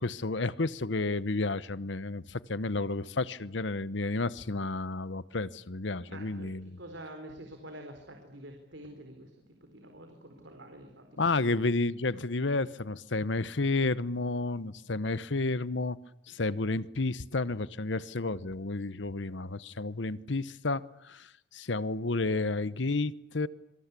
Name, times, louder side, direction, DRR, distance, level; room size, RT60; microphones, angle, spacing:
voice 1, 0.0-6.8 11.2-16.0 16.3-21.3 21.5-23.5, left 3 dB, 70° left, 1.0 m, -31 dB
voice 2, 6.1-11.3, right 1 dB, 80° right, 4.3 m, -47 dB
26.5 x 24.0 x 8.4 m
head